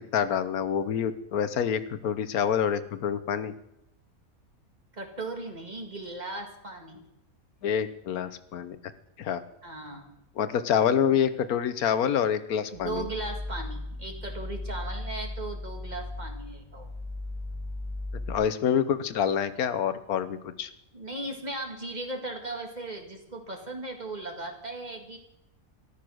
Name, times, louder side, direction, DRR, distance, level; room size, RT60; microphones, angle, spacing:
voice 1, 0.0-3.5 7.6-8.8 9.2-9.4 10.4-13.0 18.3-20.7, left 8 dB, 90° left, 13 dB, 1.4 m, -27 dB
voice 2, 4.9-7.1 9.6-10.2 12.7-16.9 20.9-25.2, right 2 dB, 30° right, 3 dB, 2.0 m, -37 dB
sound 1, 12.7-18.3, left 2 dB, 25° left, 0.8 m, -37 dB
13.5 x 12.0 x 6.3 m, 0.82 s
omnidirectional pair, 1.5 m